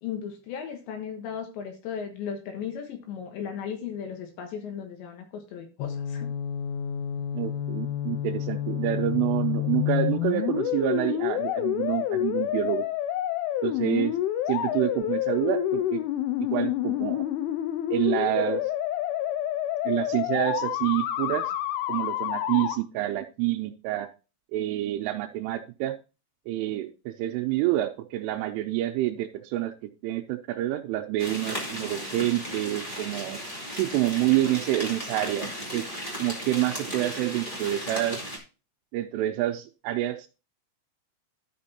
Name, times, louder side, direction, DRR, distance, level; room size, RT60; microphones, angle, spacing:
voice 1, 0.0-6.3, left 7 dB, 70° left, 4 dB, 3.3 m, -36 dB
sound 1, 5.8-22.8, left 12 dB, 90° left, 3.2 m, -28 dB
voice 2, 7.3-12.9 13.6-14.1 14.5-16.0 16.4-17.3 17.9-18.7 19.8-21.5 21.9-24.1 24.5-26.0 26.5-29.7 30.0-33.4 33.7-35.9 36.2-38.2 38.9-40.3, right 15 dB, 85° right, 1 dB, 3.1 m, -28 dB
sound 2, 31.2-38.4, equal, 50° left, 0.6 m, -35 dB
12.5 x 6.0 x 2.8 m, 0.32 s
omnidirectional pair, 5.7 m